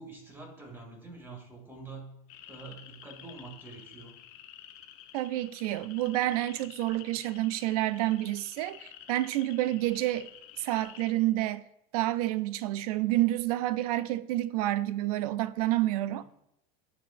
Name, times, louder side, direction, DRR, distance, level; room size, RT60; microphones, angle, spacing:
voice 1, 0.0-2.1 2.5-4.1 16.2-16.3, right 3 dB, 10° right, 1.9 m, -46 dB
sound 1, 2.3-11.1, left 11 dB, 70° left, 0.8 m, -51 dB
voice 2, 5.1-10.3 10.6-11.6 11.9-16.2, right 15 dB, 80° right, 0.4 m, -29 dB
12.0 x 4.1 x 2.5 m
supercardioid pair, 120°, 19 cm